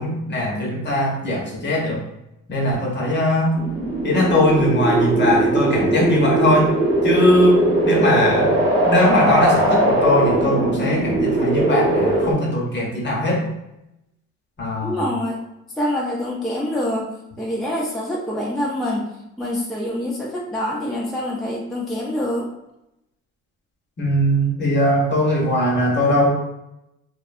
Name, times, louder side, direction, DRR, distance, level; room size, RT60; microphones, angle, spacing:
voice 1, 0.0-2.0 2.5-3.6 4.0-6.7 7.0-8.5 8.8-13.4 14.6-15.0 24.0-26.3, left 1 dB, 35° left, -1 dB, 0.8 m, -20 dB
sound 1, 3.5-12.3, right 1 dB, 45° right, 0.9 m, -19 dB
voice 2, 14.8-15.4 15.8-17.1 17.4-19.0 19.4-22.4, left 1 dB, ahead, -4 dB, 0.5 m, -25 dB
2.6 x 2.1 x 2.5 m, 0.87 s
cardioid pair, 90°, 30 cm